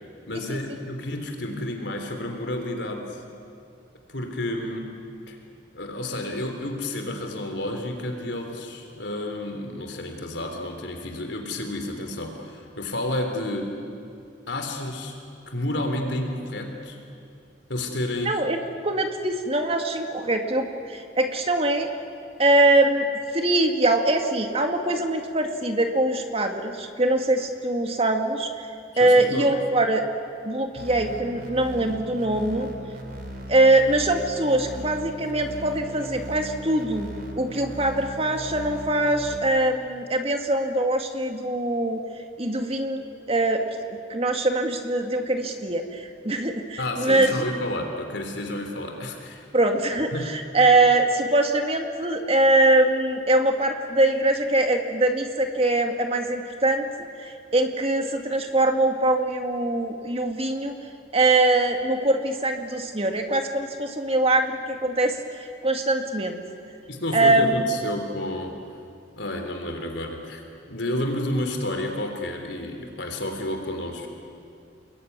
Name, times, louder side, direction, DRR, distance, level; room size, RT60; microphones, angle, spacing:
voice 1, 0.3-3.2 4.1-4.9 5.3-5.4 5.7-13.8 14.5-15.1 15.5-17.0 17.7-18.4 28.9-29.5 46.8-49.5 50.1-50.3 66.9-68.6 69.2-70.4 70.7-74.1, left 1 dB, 70° left, 4 dB, 3.5 m, -30 dB
voice 2, 18.3-21.9 22.4-23.1 23.3-28.7 29.0-30.0 30.4-32.7 33.5-37.1 37.4-42.0 42.4-43.6 44.1-47.3 49.5-56.9 57.2-60.7 61.1-66.4 67.1-67.7, right 2 dB, 30° right, 5 dB, 2.1 m, -22 dB
sound 1, 30.8-39.4, right 1 dB, 50° right, 3.6 m, -38 dB
27.5 x 22.0 x 9.6 m, 2.4 s
head